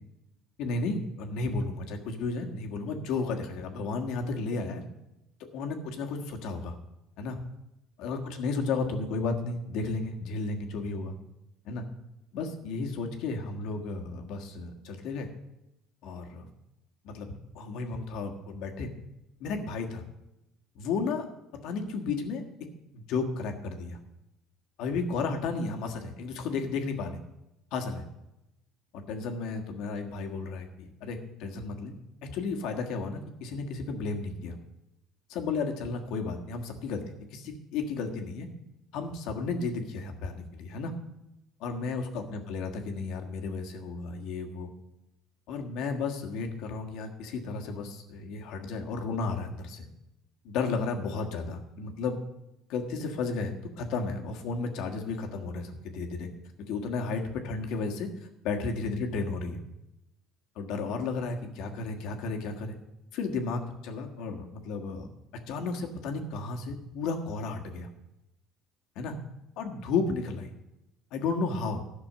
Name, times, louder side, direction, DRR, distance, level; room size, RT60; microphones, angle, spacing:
voice 1, 0.6-4.8 5.4-6.7 7.2-7.4 8.0-11.1 11.6-11.8 12.3-15.3 16.0-16.5 17.0-17.3 17.5-18.9 19.4-20.0 20.7-21.3 21.6-22.7 22.9-24.0 24.8-27.2 27.7-28.1 28.9-31.9 32.2-34.6 35.3-37.0 37.3-38.5 38.9-40.9 41.6-44.7 45.5-49.9 50.4-52.2 52.7-56.3 56.7-59.6 60.5-62.7 63.1-65.1 65.5-67.9 68.9-69.2 69.6-70.5 71.1-71.8, left 4 dB, 70° left, 3 dB, 1.5 m, -33 dB
12.0 x 6.1 x 7.5 m, 0.91 s
cardioid pair, 130°, 0 cm